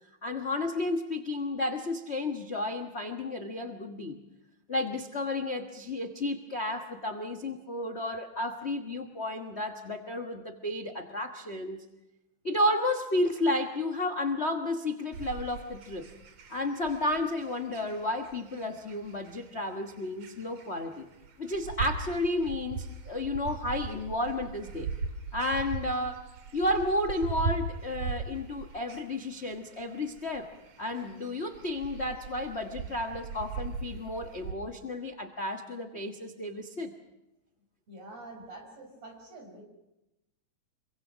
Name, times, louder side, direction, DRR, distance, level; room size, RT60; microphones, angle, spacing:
voice 1, 0.2-4.2 4.7-11.8 12.4-16.1 16.5-21.1 21.4-24.9 25.3-26.2 26.5-30.5 30.8-36.9, left 1 dB, 40° left, 7 dB, 1.0 m, -32 dB
sound 1, 15.1-34.5, right 5 dB, 85° right, 3.4 m, -39 dB
voice 2, 37.9-39.6, right 2 dB, 60° right, 2 dB, 6.8 m, -46 dB
27.0 x 23.5 x 6.2 m, 0.95 s
omnidirectional pair, 3.3 m